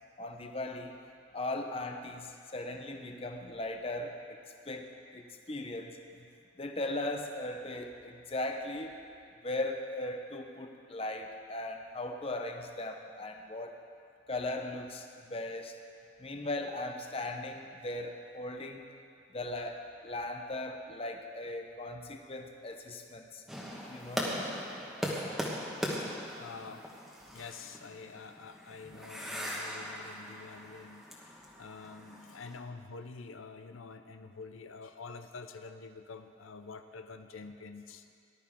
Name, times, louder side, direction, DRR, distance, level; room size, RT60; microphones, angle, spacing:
voice 1, 0.2-1.0 1.3-4.4 4.7-6.2 6.6-9.0 9.4-13.7 14.3-15.8 16.2-18.8 19.3-23.4 23.9-24.3, left 2 dB, 30° left, 4 dB, 0.8 m, -38 dB
sound 1, 23.5-32.6, equal, ahead, 1.4 m, -39 dB
voice 2, 26.4-26.9 27.3-38.2, left 4 dB, 85° left, 8 dB, 0.6 m, -47 dB
18.5 x 11.5 x 3.7 m, 2.4 s
head